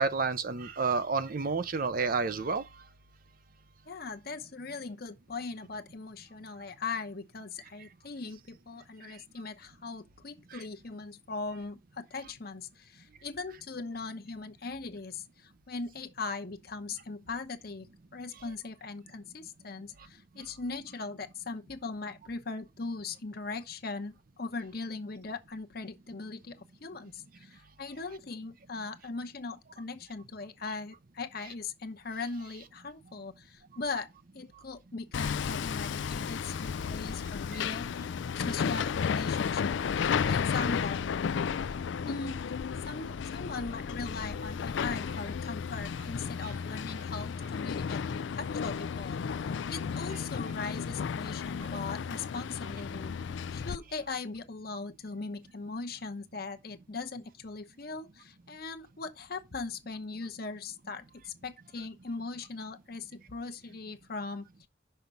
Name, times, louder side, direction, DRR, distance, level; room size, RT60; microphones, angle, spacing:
voice 1, 0.0-2.6 46.4-46.5, right 4 dB, 45° right, 0.6 m, -29 dB
voice 2, 3.9-41.1 42.1-42.5 42.9-64.7, left 4 dB, 55° left, 0.9 m, -40 dB
Hammer, 35.1-53.8, left 6 dB, 75° left, 0.4 m, -33 dB
5.8 x 5.5 x 5.2 m
head